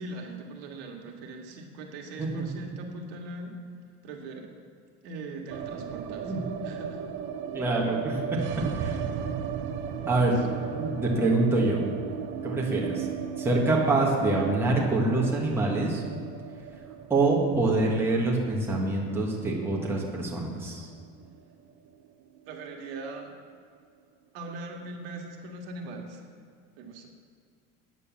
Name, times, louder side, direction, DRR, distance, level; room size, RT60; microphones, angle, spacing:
voice 1, 0.0-3.6 4.0-4.6 5.0-7.0 10.0-10.5 22.5-23.3 24.3-26.2 26.8-27.1, right 2 dB, 70° right, 2 dB, 1.8 m, -40 dB
sound 1, 5.5-21.6 21.9-22.0 22.2-22.9, right 8 dB, 40° right, 0.7 m, -36 dB
voice 2, 7.5-9.0 10.0-10.3 10.8-11.8 12.4-13.1 13.4-16.0 17.1-20.9, right 2 dB, 10° right, -3 dB, 1.6 m, -25 dB
9.4 x 8.2 x 7.1 m, 2.3 s
cardioid pair, 160°, 31 cm